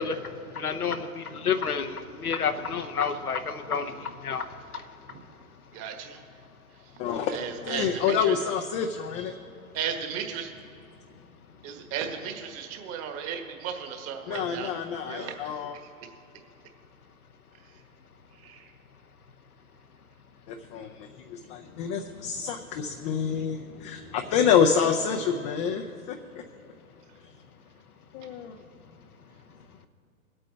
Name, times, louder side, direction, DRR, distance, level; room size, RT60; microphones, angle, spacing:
voice 1, 0.0-4.9, left 6 dB, 80° left, 7 dB, 0.9 m, -30 dB
voice 2, 5.7-6.2 6.8-6.9 7.3-8.4 9.7-10.5 11.6-14.7 15.0-15.6 17.6-17.8 18.3-18.7, right 7 dB, 35° right, 5 dB, 1.5 m, -35 dB
voice 3, 7.0-7.3 7.6-9.3 14.3-15.7 20.5-26.4 28.1-28.6, left 7 dB, 25° left, 3 dB, 0.5 m, -27 dB
22.5 x 8.6 x 3.3 m, 2.6 s
figure-of-eight pair, 105°, 44 cm